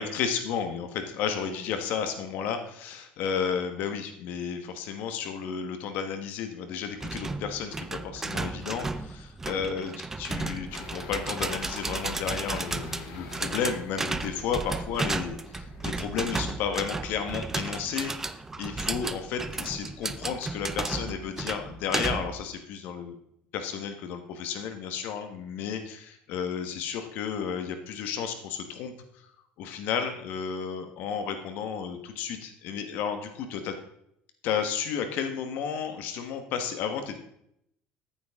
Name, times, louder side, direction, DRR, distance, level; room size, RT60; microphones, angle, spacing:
voice 1, 0.0-18.1 18.6-23.2 23.5-28.9 29.6-33.7 34.4-37.2, left 7 dB, 55° left, 7 dB, 1.4 m, -32 dB
sound 1, 7.0-22.4, right 3 dB, 10° right, 0.5 m, -34 dB
sound 2, 10.7-16.0, left 6 dB, 80° left, 2.0 m, -47 dB
14.0 x 8.9 x 3.7 m, 0.73 s
cardioid pair, 170°, 4 cm